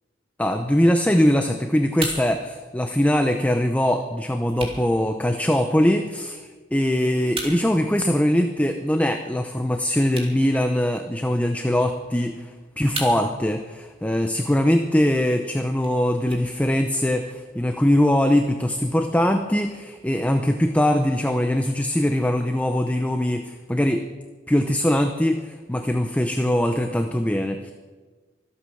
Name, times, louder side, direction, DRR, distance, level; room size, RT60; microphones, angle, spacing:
voice 1, 0.4-12.5 12.8-24.0 24.5-27.7, left 1 dB, 10° left, 6 dB, 0.7 m, -22 dB
sound 1, 1.1-17.1, right 3 dB, 30° right, 2.9 m, -41 dB
25.0 x 8.5 x 6.3 m, 1.4 s
head